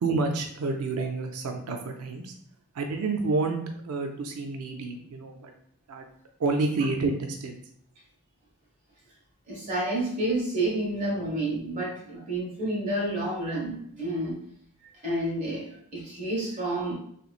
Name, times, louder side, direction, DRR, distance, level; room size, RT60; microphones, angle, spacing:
voice 1, 0.0-2.4 2.7-3.6 3.8-5.5 5.9-6.0 6.4-7.6, right 3 dB, 80° right, 4 dB, 0.4 m, -29 dB
voice 2, 9.5-14.4 15.0-16.9, right 1 dB, 35° right, -4 dB, 1.4 m, -29 dB
3.3 x 3.0 x 2.4 m, 0.66 s
head